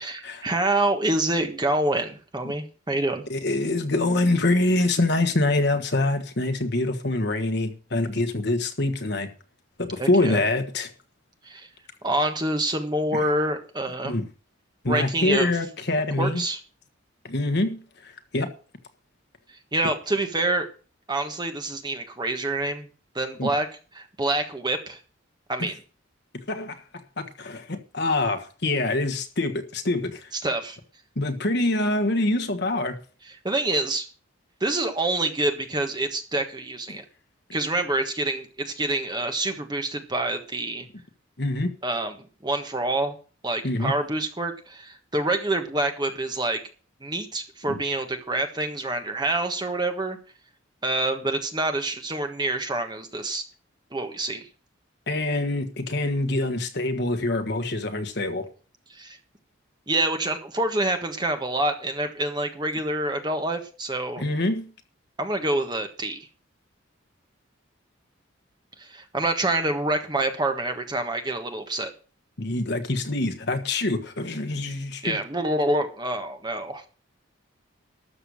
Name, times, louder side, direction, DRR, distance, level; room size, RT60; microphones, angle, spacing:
voice 1, 0.0-3.2 10.0-10.4 11.4-11.7 12.0-14.1 14.9-15.5 16.2-16.6 19.7-20.7 21.1-22.9 23.1-23.7 23.9-25.0 25.5-25.7 30.3-30.8 33.4-34.1 34.6-37.0 37.5-40.9 41.8-43.2 43.4-46.6 47.0-50.2 50.8-53.4 53.9-54.5 58.9-59.2 59.9-64.2 65.2-66.3 68.8-71.9 75.0-76.8, right 2 dB, 20° right, 1.4 m, -27 dB
voice 2, 3.3-9.3 9.8-10.9 13.1-13.2 14.0-14.2 14.8-16.4 17.2-18.5 23.4-23.5 26.5-30.3 31.1-33.0 36.9-37.0 41.4-41.7 43.6-43.9 47.7-47.8 55.1-58.4 64.2-64.6 72.4-75.2, left 2 dB, 55° left, 1.5 m, -25 dB
13.0 x 6.9 x 6.5 m
head